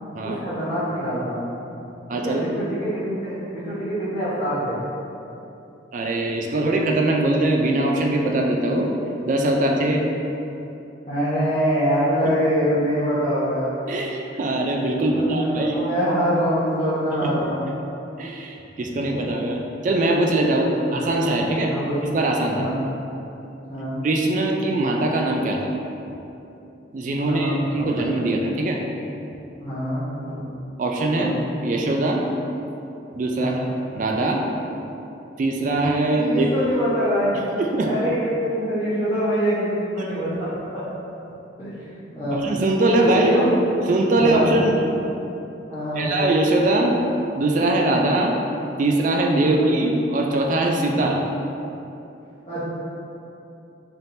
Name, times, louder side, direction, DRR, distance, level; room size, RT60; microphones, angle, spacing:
voice 1, 0.2-1.5 2.1-4.8 11.1-13.7 15.0-17.7 20.6-20.9 21.7-22.0 22.5-22.8 23.7-24.0 27.2-28.0 29.6-30.5 31.2-31.4 33.4-33.6 36.2-37.5 37.8-39.7 39.9-40.8 41.6-42.5 43.1-43.5 44.2-44.5 45.7-46.3 48.0-48.1 49.4-49.7 50.9-51.1 52.5-52.6, equal, 25° left, -14 dB, 0.9 m, -25 dB
voice 2, 2.1-2.4 5.9-9.0 9.2-10.0 13.9-15.8 18.2-21.7 22.1-22.6 24.0-25.7 26.9-28.8 30.8-31.4 31.6-32.2 33.1-33.5 33.9-34.4 35.4-36.5 37.6-37.9 42.3-43.4 43.9-44.8 46.0-47.0 47.3-48.3 48.8-51.2, right 2 dB, 40° right, 1 dB, 0.3 m, -21 dB
4.2 x 3.5 x 2.6 m, 2.9 s
head